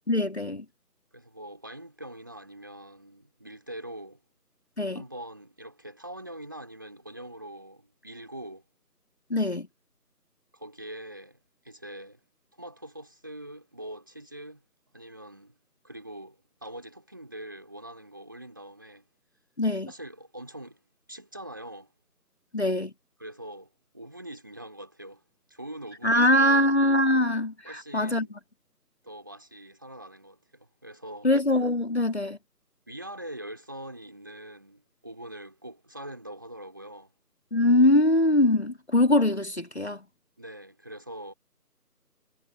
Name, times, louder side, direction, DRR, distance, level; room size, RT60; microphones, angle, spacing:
voice 1, 0.1-0.6 4.8-5.0 9.3-9.7 19.6-19.9 22.5-22.9 26.0-28.3 31.2-32.4 37.5-40.0, left 1 dB, 40° left, 2.4 m, -22 dB
voice 2, 1.1-4.2 4.9-8.6 10.5-12.2 12.6-14.6 14.9-15.5 15.8-19.1 19.9-20.8 21.1-21.9 23.2-25.2 25.5-26.8 27.6-28.4 29.0-31.3 32.9-37.1 40.4-41.3, right 1 dB, 15° right, 4.2 m, -43 dB
figure-of-eight pair, 175°, 48 cm